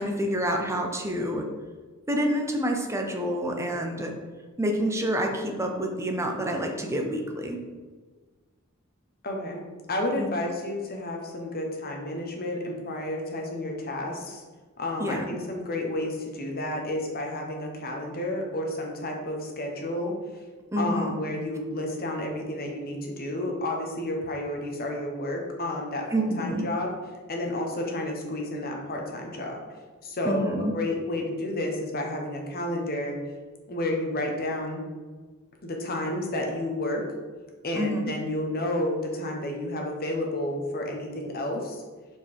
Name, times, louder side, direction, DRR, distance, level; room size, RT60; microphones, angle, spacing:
voice 1, 0.0-1.5 2.1-4.1 4.6-7.6 10.2-10.3 15.0-15.2 20.7-21.2 26.1-26.7 30.2-30.7 37.7-38.1, equal, 15° right, 2 dB, 0.8 m, -28 dB
voice 2, 9.2-14.4 14.8-20.1 20.8-26.9 27.3-29.6 30.0-33.2 33.7-34.8 35.6-37.0 37.6-41.8, left 1 dB, 45° left, 1 dB, 1.2 m, -31 dB
5.4 x 4.6 x 4.6 m, 1.3 s
head